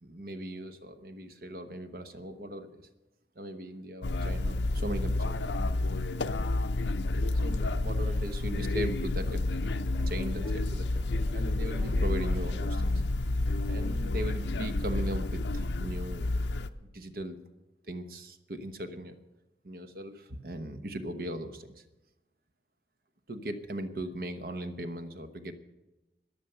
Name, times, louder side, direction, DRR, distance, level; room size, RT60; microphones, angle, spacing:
voice 1, 0.0-2.9 3.4-5.5 7.3-9.6 10.1-11.1 11.3-12.9 13.7-16.3 16.9-17.4 17.8-19.1 19.6-21.8 23.3-25.6, right 1 dB, 55° right, 8 dB, 1.0 m, -38 dB
sound 1, 4.0-16.7, left 2 dB, 80° left, 0.6 m, -30 dB
sound 2, 8.0-14.9, right 1 dB, 35° right, 4.1 m, -56 dB
13.5 x 10.5 x 6.7 m, 1.0 s
head